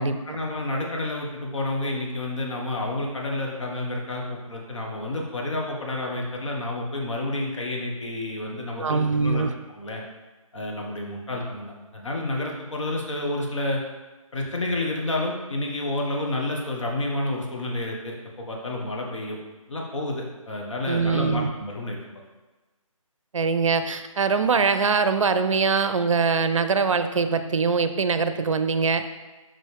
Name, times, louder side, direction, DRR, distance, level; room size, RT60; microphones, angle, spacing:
voice 1, 0.0-9.5 9.7-10.0 10.5-13.8 14.3-19.4 19.7-22.1, left 2 dB, 60° left, -1 dB, 1.3 m, -30 dB
voice 2, 8.8-9.5 20.9-21.5 23.3-29.1, right 5 dB, 60° right, 9 dB, 0.5 m, -23 dB
5.7 x 5.2 x 3.3 m, 1.2 s
figure-of-eight pair, 160°, 18 cm